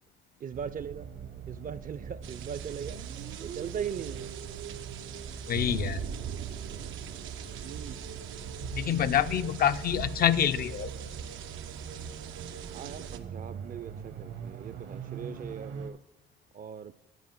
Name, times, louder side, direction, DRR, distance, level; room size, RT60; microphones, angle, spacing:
voice 1, 0.4-1.1 1.5-3.0 3.4-4.3 7.6-8.0 12.7-16.0 16.5-16.9, right 8 dB, 45° right, 0.4 m, -39 dB
sound 1, 0.5-15.9, right 6 dB, 65° right, 1.0 m, -42 dB
sound 2, 2.2-13.2, right 8 dB, 85° right, 0.6 m, -41 dB
voice 2, 5.5-6.1 8.6-10.9, left 10 dB, 50° left, 0.4 m, -27 dB
9.8 x 5.0 x 5.9 m
cardioid pair, 90°, 20 cm